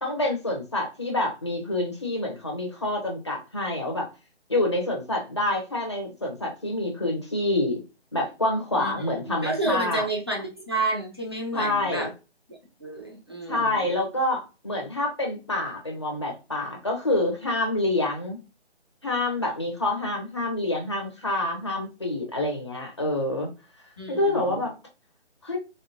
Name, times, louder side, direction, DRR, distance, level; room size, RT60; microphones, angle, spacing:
voice 1, 0.0-4.1 4.5-7.8 8.1-10.1 11.5-12.1 13.5-18.4 19.0-23.5 24.1-24.7 25.4-25.6, left 2 dB, 25° left, 0 dB, 0.5 m, -27 dB
voice 2, 8.8-12.1 12.8-13.9 24.0-24.6, right 2 dB, 25° right, -2 dB, 0.5 m, -30 dB
3.4 x 2.1 x 2.6 m, 0.29 s
figure-of-eight pair, 165°, 34 cm